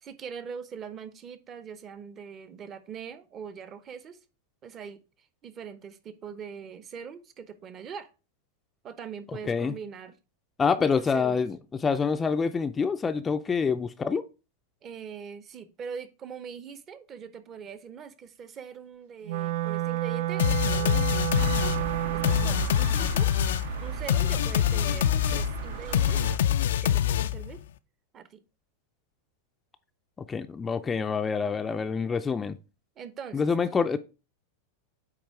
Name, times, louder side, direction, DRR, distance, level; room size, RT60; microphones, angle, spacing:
voice 1, 0.0-4.2 4.6-5.0 5.4-8.1 8.8-10.2 10.7-11.4 14.8-21.5 22.1-23.3 23.8-26.3 26.6-27.6 28.1-28.4 33.0-33.8, right 7 dB, 30° right, 0.8 m, -42 dB
voice 2, 10.6-14.2 30.3-32.6 33.3-34.0, left 5 dB, 20° left, 0.4 m, -26 dB
Wind instrument woodwind instrument, 19.2-22.6, right 14 dB, 65° right, 0.3 m, -30 dB
sound 1, 20.4-27.6, left 11 dB, 80° left, 0.4 m, -25 dB
sound 2, 21.4-26.4, right 7 dB, 85° right, 1.5 m, -36 dB
8.7 x 3.0 x 4.6 m
hypercardioid pair, 120°, 0 cm